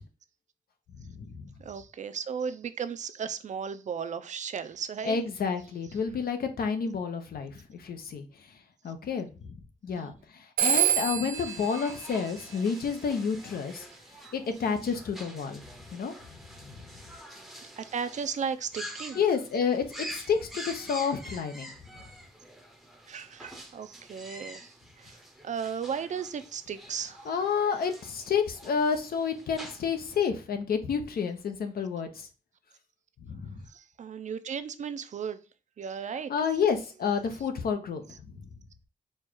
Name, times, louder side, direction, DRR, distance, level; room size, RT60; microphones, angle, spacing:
voice 1, 1.0-1.5 5.1-8.3 8.8-9.5 9.8-13.8 14.3-15.6 15.9-16.1 16.6-16.8 19.2-19.8 20.1-21.7 27.3-32.3 33.3-33.6 36.3-38.0 38.4-38.5, left 6 dB, 90° left, 0.7 m, -30 dB
voice 2, 1.6-5.2 9.9-10.2 17.4-17.5 17.8-19.2 23.1-25.2 25.4-27.2 33.7-35.4 35.8-36.3, right 7 dB, 55° right, 0.4 m, -35 dB
Telephone, 10.6-13.1, right 10 dB, 80° right, 0.7 m, -28 dB
sound 1, 11.3-30.2, equal, ahead, 0.6 m, -46 dB
4.4 x 2.3 x 4.5 m
wide cardioid pair, 170°, 15 cm